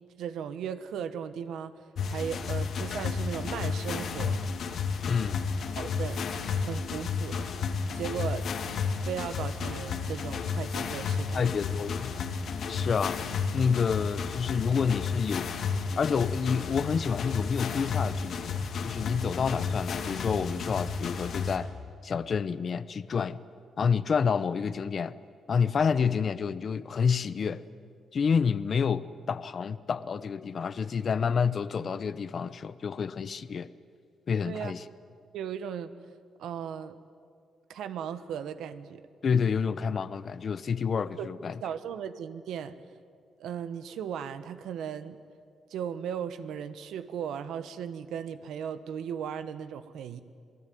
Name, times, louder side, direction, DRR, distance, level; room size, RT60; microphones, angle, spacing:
voice 1, 0.2-1.7 2.1-4.5 5.8-6.2 6.6-7.4 7.9-8.5 9.1-11.5 34.4-34.7 35.3-35.9 36.4-37.0 37.7-39.0 41.2-41.3 41.6-42.7 43.4-45.2 45.7-50.2, right 8 dB, 85° right, 12 dB, 1.2 m, -36 dB
sound 1, 2.0-21.6, left 5 dB, 65° left, 2.4 m, -32 dB
voice 2, 5.1-5.5 11.3-12.1 12.7-13.2 13.5-15.5 16.0-21.7 22.0-23.4 23.8-25.1 25.5-27.6 28.1-33.7 34.3-34.8 39.2-41.6, left 6 dB, 45° left, 15 dB, 0.8 m, -28 dB
27.5 x 19.5 x 9.4 m, 2.2 s
cardioid pair, 115°, 0 cm